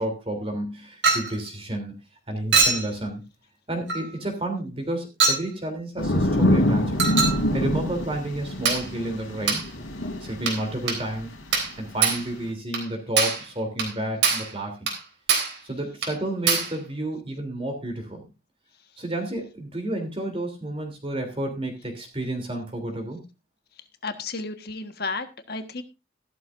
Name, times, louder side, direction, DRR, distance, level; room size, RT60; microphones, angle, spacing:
voice 1, 0.0-1.9 2.3-3.2 3.7-7.0 7.5-9.7 10.2-11.3 11.8-14.8 15.6-18.2 19.0-23.2, right 1 dB, 30° right, 3 dB, 3.1 m, -31 dB
Chink clink, 1.0-1.3 2.5-2.9 3.9-4.1 5.2-5.5 7.0-7.4 8.6-8.9 9.5-9.7 10.5-10.6 10.9-11.0 11.5-11.7 12.0-12.3 12.7-12.9 13.2-13.4 13.8-13.9 14.2-14.5 14.9-15.0 15.3-15.6 16.0-16.1 16.5-16.7, right 5 dB, 65° right, 3.8 m, -23 dB
sound 1, 6.0-11.7 12.2-12.5, left 1 dB, 90° left, 3.2 m, -25 dB
voice 2, 24.0-25.8, left 3 dB, 50° left, 8 dB, 1.4 m, -32 dB
14.5 x 12.5 x 2.6 m, 0.27 s
head